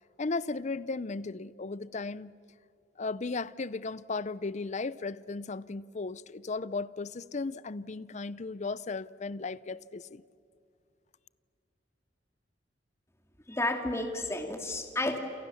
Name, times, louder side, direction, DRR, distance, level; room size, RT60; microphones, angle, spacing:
voice 1, 0.2-2.3 3.0-10.2, left 3 dB, 40° left, 0.6 m, -36 dB
voice 2, 13.5-15.2, left 2 dB, 15° left, 2.5 m, -31 dB
28.5 x 28.0 x 7.1 m
head